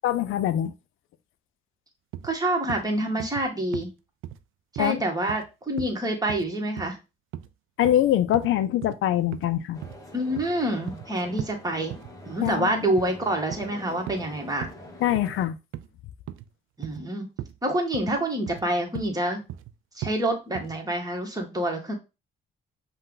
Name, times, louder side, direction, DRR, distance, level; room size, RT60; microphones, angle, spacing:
voice 1, 0.0-0.7 4.8-5.0 7.8-9.8 12.4-12.7 15.0-15.6, left 12 dB, 75° left, 0.4 m, -23 dB
sound 1, 2.1-2.3 2.7-2.8 3.2-3.5 3.7-3.9 4.2-4.4 4.8-4.9 5.3-5.5 5.8-5.9 6.3-6.5 6.8-6.9 7.3-7.5 7.8-8.0 8.3-8.5 8.8-9.0 9.3-9.5 9.8-10.0 10.4-11.1 11.4-11.5 11.9-12.1 12.5-12.6 13.0-13.2 13.5-13.7 14.1-14.3 14.6-14.7 15.1-15.4 15.7-15.9 16.3-16.5 16.8-17.0 17.4-17.6 17.9-18.2 18.5-18.7 18.9-19.1 19.5-19.7 20.0-20.2 20.5-20.8, right 12 dB, 75° right, 0.4 m, -37 dB
voice 2, 2.2-3.9 4.7-7.0 10.1-11.9 12.3-14.7 16.8-17.3 17.6-19.4 20.0-21.9, right 1 dB, 15° right, 1.4 m, -27 dB
sound 2, 9.7-15.5, left 1 dB, 15° left, 1.2 m, -46 dB
5.4 x 2.3 x 3.9 m
cardioid pair, 90°, 21 cm